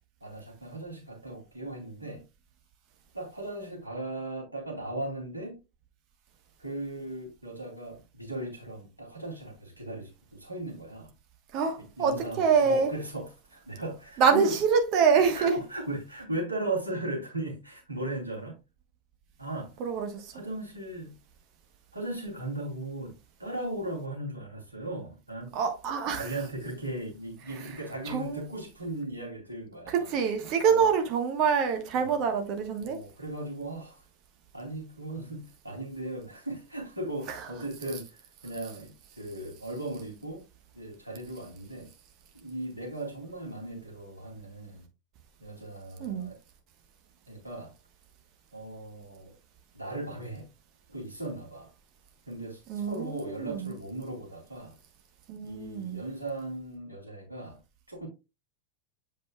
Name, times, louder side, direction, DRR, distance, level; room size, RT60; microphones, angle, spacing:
voice 1, 0.2-2.2 3.1-5.6 6.6-11.1 11.8-14.5 15.3-18.5 19.4-19.7 20.3-21.1 21.9-25.6 26.1-30.1 30.7-30.8 31.9-32.2 32.8-34.0 34.5-38.1 38.4-40.4 40.7-41.9 42.3-44.9 45.4-46.4 47.3-47.7 48.5-49.3 49.7-50.5 50.9-51.7 52.3-54.8 55.4-57.6 57.9-58.1, right 1 dB, 85° right, 2.8 m, -37 dB
voice 2, 11.5-12.9 14.2-15.5 19.8-20.3 25.5-26.4 28.0-28.4 29.9-33.0 37.3-37.4 46.0-46.3 52.7-53.7 55.3-56.0, right 6 dB, 40° right, 1.2 m, -26 dB
7.6 x 5.4 x 2.3 m
figure-of-eight pair, 90°, 0 cm